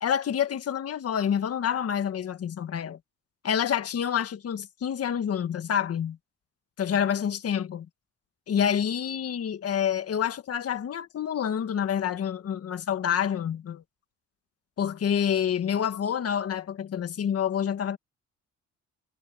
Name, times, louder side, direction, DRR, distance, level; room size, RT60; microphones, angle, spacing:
voice 1, 0.0-3.0 3.4-6.2 6.8-7.9 8.5-13.8 14.8-18.0, left 8 dB, 50° left, 1.5 m, -28 dB
cardioid pair, 90°, 30 cm